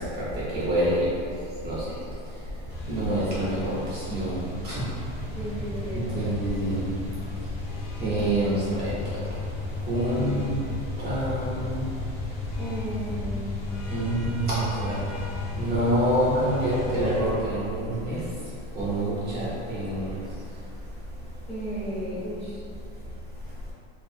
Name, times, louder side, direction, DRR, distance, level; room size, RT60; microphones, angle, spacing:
voice 1, 0.2-1.1 1.6-1.8 2.9-4.8 5.9-6.9 8.0-8.9 9.9-10.6 11.0-11.9 13.9-15.0 15.6-18.2 18.8-20.1, right 1 dB, 25° right, -9 dB, 0.5 m, -26 dB
sound 1, 2.7-17.2, left 2 dB, 85° left, 0.8 m, -34 dB
voice 2, 5.3-6.0 6.3-6.4 12.6-13.7 14.8-15.1 21.5-22.6, right 1 dB, 15° left, -10 dB, 0.6 m, -34 dB
2.5 x 2.4 x 2.5 m, 2.4 s
supercardioid pair, 145°, 38 cm